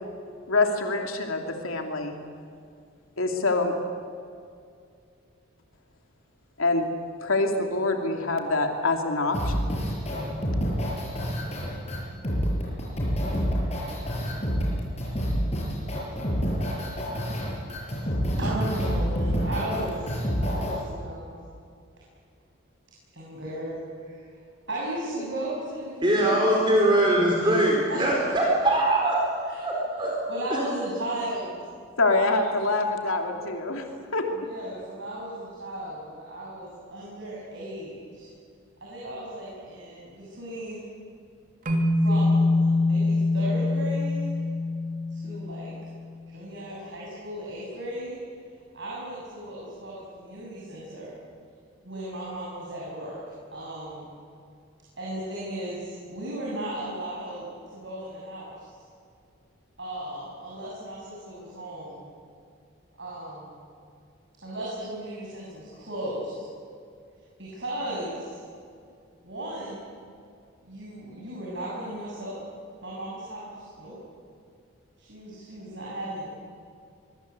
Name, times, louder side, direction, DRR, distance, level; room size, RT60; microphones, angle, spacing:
voice 1, 0.5-2.2 3.2-3.7 6.6-6.9 7.2-9.5 32.0-33.8 34.1-34.2, left 3 dB, 80° left, 3 dB, 2.9 m, -25 dB
sound 1, 9.3-20.8, equal, 30° left, 6.9 m, -27 dB
voice 2, 18.4-20.1 20.4-21.4 23.1-24.3 24.7-27.0 27.4-27.6 27.9-28.3 29.5-29.6 30.3-31.6 32.0-32.6 34.3-38.3 38.8-40.8 42.0-44.3 45.1-45.7 46.3-48.2 48.7-51.1 51.8-53.2 53.5-54.0 55.0-57.5 57.7-58.7 59.8-62.1 63.0-63.6 64.4-66.4 67.4-68.4 69.2-69.8 70.6-72.4 72.8-73.9 75.0-76.2, right 1 dB, 55° right, -5 dB, 7.1 m, -36 dB
voice 3, 26.0-29.2 29.6-30.1, right 1 dB, 25° right, -2 dB, 4.4 m, -22 dB
sound 2, 41.7-46.0, left 2 dB, 40° right, 2.9 m, -24 dB
25.0 x 23.0 x 8.3 m, 2.3 s
head